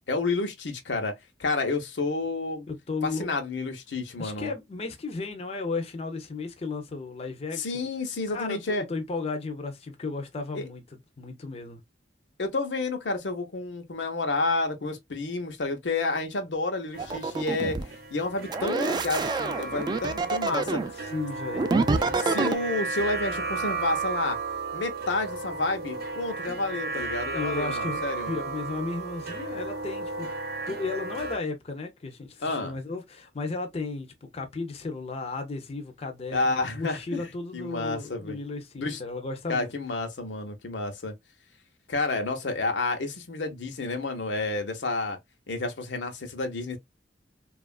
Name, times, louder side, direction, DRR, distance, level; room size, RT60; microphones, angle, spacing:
voice 1, 0.1-2.7 3.0-4.5 7.5-8.8 10.5-10.7 12.4-17.8 18.1-20.8 22.2-24.4 24.7-28.3 32.4-32.8 36.3-37.2 37.5-38.4 38.8-39.0 39.5-41.1 41.9-45.2 45.5-46.8, left 3 dB, 90° left, 0.7 m, -30 dB
voice 2, 2.7-3.3 4.2-7.8 8.3-11.8 20.6-20.7 21.1-21.7 22.1-22.2 27.3-30.3 30.7-39.7, left 3 dB, 35° left, 0.5 m, -34 dB
sound 1, 16.9-31.4, right 3 dB, 60° right, 0.7 m, -34 dB
sound 2, 17.0-17.9 18.5-20.9 21.5-22.6, right 3 dB, 25° right, 0.3 m, -27 dB
2.9 x 2.4 x 2.3 m
head